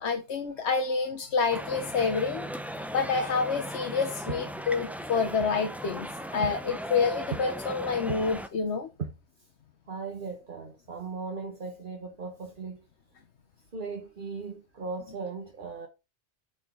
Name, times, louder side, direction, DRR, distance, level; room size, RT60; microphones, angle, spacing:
voice 1, 0.0-2.4 2.9-6.1 6.3-6.6 6.9-8.9, left 5 dB, 70° left, 1.2 m, -28 dB
voice 2, 0.5-1.0 4.3-4.4 5.4-5.5 6.4-6.5 7.3-7.4 8.1-8.3 9.0-9.1 9.4-9.5 9.9-12.8 13.7-15.9, right 5 dB, 50° right, 1.3 m, -37 dB
sound 1, 1.5-8.5, equal, ahead, 0.4 m, -37 dB
8.7 x 4.9 x 3.8 m
omnidirectional pair, 1.2 m